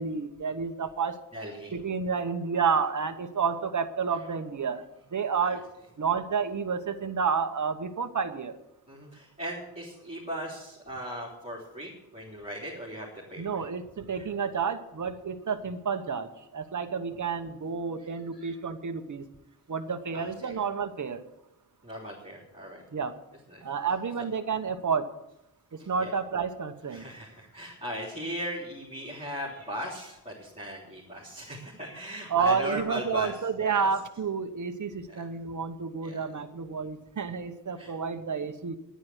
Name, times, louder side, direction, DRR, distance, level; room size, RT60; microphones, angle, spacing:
voice 1, 0.0-1.2 1.7-4.8 5.1-5.6 6.0-8.6 13.4-19.3 19.7-21.2 22.9-23.2 23.6-25.1 25.7-27.1 32.3-38.8, right 6 dB, 45° right, 7 dB, 1.1 m, -30 dB
voice 2, 1.3-1.7 5.4-5.5 8.9-13.6 14.1-14.3 18.3-18.5 20.1-20.6 21.8-22.8 23.5-23.6 25.8-26.1 26.9-33.3 33.6-33.9 35.1-35.3 36.0-36.2 37.8-37.9, equal, 15° right, -6 dB, 3.5 m, -38 dB
10.5 x 9.5 x 8.1 m, 0.86 s
wide cardioid pair, 115°, 40 cm